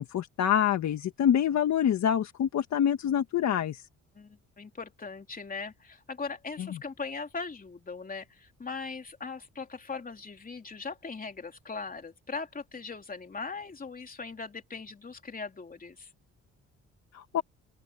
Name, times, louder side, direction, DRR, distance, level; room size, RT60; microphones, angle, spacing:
voice 1, 0.0-3.8 6.6-6.8 17.1-17.4, left 9 dB, 65° left, 1.6 m, -26 dB
voice 2, 4.1-16.1, left 4 dB, 30° left, 3.2 m, -39 dB
open air
cardioid pair, 90°, 30 cm